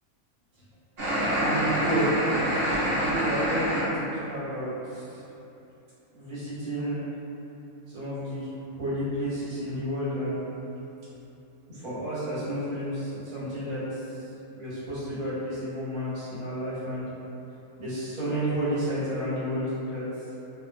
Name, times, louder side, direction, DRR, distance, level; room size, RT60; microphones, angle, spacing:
sound 1, 1.0-3.9, equal, 50° right, 0.9 m, -26 dB
voice 1, 1.4-2.2 2.9-5.2 6.1-7.1 7.9-8.5 8.7-10.4 11.7-14.2 14.5-17.0 17.8-20.0, equal, 85° right, -13 dB, 1.5 m, -31 dB
2.8 x 2.3 x 2.4 m, 2.9 s
omnidirectional pair, 1.5 m